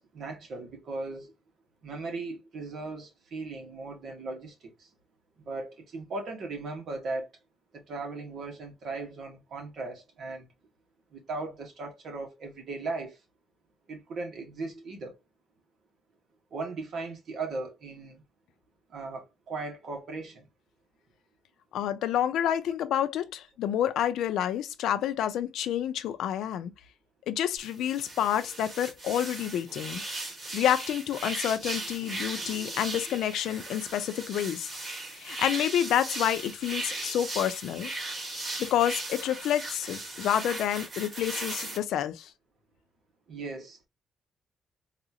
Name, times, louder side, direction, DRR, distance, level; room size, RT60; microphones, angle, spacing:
voice 1, 0.0-1.3 1.8-4.9 5.4-7.3 7.7-10.4 11.1-13.2 13.9-15.2 16.5-18.2 18.9-20.5 43.3-43.9, right 3 dB, 55° right, 1.4 m, -37 dB
voice 2, 21.7-26.7 27.3-30.0 30.5-34.7 35.1-37.9 38.6-42.3, left 10 dB, 90° left, 0.5 m, -28 dB
sound 1, 27.6-41.8, right 2 dB, 30° right, 2.3 m, -37 dB
4.0 x 2.5 x 2.8 m
cardioid pair, 140°, 0 cm